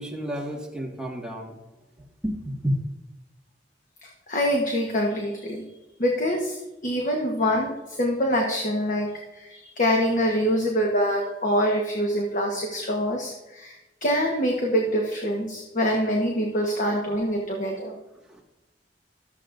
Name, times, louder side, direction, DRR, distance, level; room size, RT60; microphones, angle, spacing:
voice 1, 0.0-1.6 2.2-2.8 16.8-16.9 18.3-18.4, equal, 5° right, -2 dB, 1.7 m, -30 dB
voice 2, 4.3-5.6 6.0-17.9, equal, 50° left, 0 dB, 1.2 m, -25 dB
13.5 x 7.5 x 2.6 m, 1.0 s
head